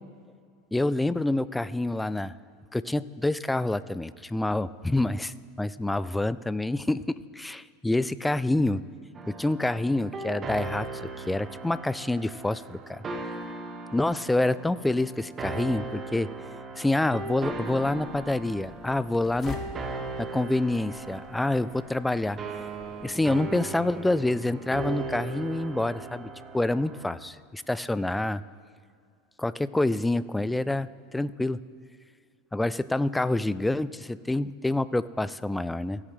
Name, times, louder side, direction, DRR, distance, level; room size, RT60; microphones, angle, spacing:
voice 1, 0.7-2.3 2.7-8.8 9.3-10.9 11.3-13.0 13.9-16.3 16.8-19.6 20.2-22.4 23.0-28.4 29.4-31.6 32.5-36.0, left 2 dB, 5° left, 17 dB, 0.3 m, -27 dB
sound 1, 9.1-27.1, right 3 dB, 30° right, 1.0 m, -38 dB
sound 2, 17.2-23.4, left 4 dB, 35° left, 1.1 m, -47 dB
17.0 x 7.3 x 3.3 m, 2.2 s
hypercardioid pair, 90°, 0 cm